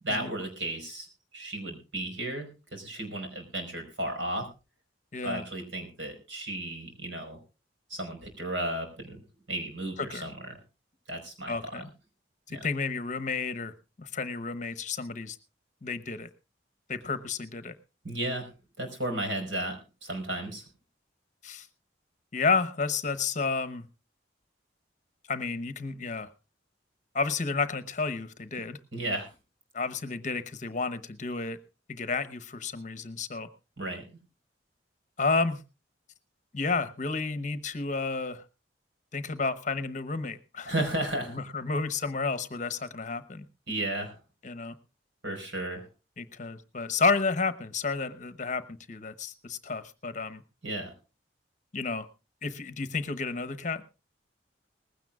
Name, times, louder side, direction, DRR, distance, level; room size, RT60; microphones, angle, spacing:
voice 1, 0.0-1.1 1.3-4.5 5.2-7.4 7.9-9.2 9.5-10.3 11.1-11.8 12.5-12.6 18.0-18.5 18.8-20.6 28.9-29.3 33.8-34.0 40.6-41.4 43.7-44.2 45.2-45.9 50.6-50.9, right 1 dB, 90° right, 4 dB, 5.0 m, -34 dB
voice 2, 5.1-5.4 10.0-10.3 11.5-11.9 12.5-13.7 14.0-15.4 15.8-16.3 16.9-17.7 21.4-21.7 22.3-23.8 25.3-26.3 27.1-28.8 29.7-31.6 31.9-33.5 35.2-35.6 36.5-38.4 39.1-40.7 41.3-43.4 44.4-44.7 46.2-50.4 51.7-52.1 52.4-53.8, left 4 dB, 40° left, 13 dB, 0.9 m, -31 dB
19.5 x 16.0 x 2.4 m, 0.30 s
head